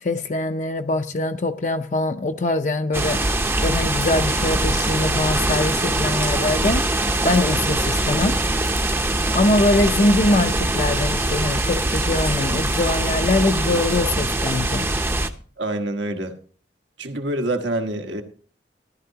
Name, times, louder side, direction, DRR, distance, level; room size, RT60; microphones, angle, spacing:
voice 1, 0.0-3.2 3.6-6.8 7.2-8.4 9.3-14.9, left 2 dB, 40° left, 0.5 m, -22 dB
sound 1, 2.9-15.3, right 2 dB, 15° right, 0.6 m, -22 dB
voice 2, 15.6-16.3 17.0-18.2, right 1 dB, 85° right, 1.3 m, -26 dB
14.5 x 11.5 x 2.8 m
head